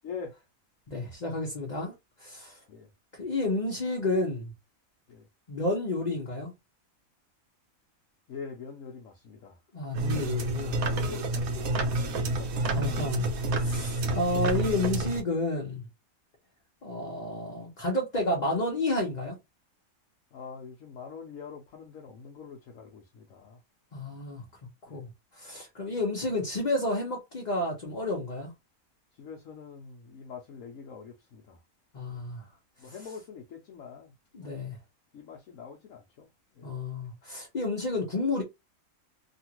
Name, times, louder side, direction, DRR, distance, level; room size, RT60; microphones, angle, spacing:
voice 1, 0.0-0.4 2.7-2.9 5.1-5.3 8.3-9.6 10.0-12.7 20.3-23.6 24.9-25.0 29.1-31.6 32.1-32.2 32.8-34.6 35.1-36.7, left 6 dB, 70° left, 1.0 m, -45 dB
voice 2, 0.9-1.9 2.2-2.6 3.2-4.5 5.5-6.5 9.7-10.8 12.7-13.3 13.6-15.8 16.8-19.4 23.9-24.4 24.9-28.5 31.9-32.4 34.3-34.8 36.6-38.4, left 2 dB, 35° left, 0.8 m, -30 dB
sound 1, 9.9-15.2, right 2 dB, 75° right, 1.1 m, -29 dB
2.8 x 2.4 x 2.9 m
omnidirectional pair, 1.5 m